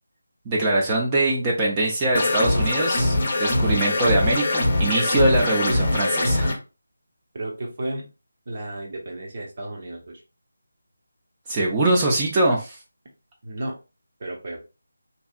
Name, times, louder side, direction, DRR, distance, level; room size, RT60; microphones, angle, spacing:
voice 1, 0.5-6.6 11.5-12.8, right 2 dB, 20° right, -2 dB, 0.4 m, -22 dB
sound 1, 2.1-6.5, left 1 dB, 40° left, 0.6 m, -22 dB
voice 2, 7.3-8.1 8.5-10.2 13.4-13.8 14.2-14.6, right 1 dB, 40° right, 0 dB, 0.8 m, -33 dB
2.7 x 2.3 x 2.3 m, 0.30 s
figure-of-eight pair, 160°, 0 cm